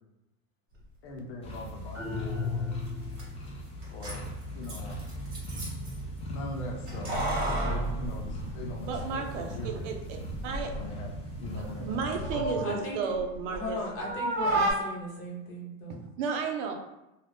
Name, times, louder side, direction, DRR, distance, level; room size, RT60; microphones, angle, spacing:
voice 1, 1.0-2.7 3.9-5.0 6.3-9.9 10.7-11.1 11.4-12.0 12.3-12.7, left 2 dB, 60° left, 1 dB, 0.7 m, -40 dB
sound 1, 1.4-12.4, right 1 dB, 15° left, 0.5 m, -39 dB
sound 2, 1.9-3.4, left 4 dB, 10° right, 0.9 m, -34 dB
Keys jangling, 2.9-3.0 3.2-3.3 3.8-5.9 6.9-9.0 9.3-9.4 10.3-10.8 11.2-13.7 14.0-14.7, right 1 dB, 35° right, 1.4 m, -32 dB
voice 2, 8.8-10.0 10.4-10.8 11.6-13.8 15.9-16.7, right 5 dB, 65° right, 3 dB, 0.6 m, -33 dB
voice 3, 12.6-13.0 13.5-16.0, left 1 dB, 35° left, -3 dB, 1.0 m, -37 dB
2.5 x 2.3 x 3.4 m, 0.91 s
supercardioid pair, 125°, 39 cm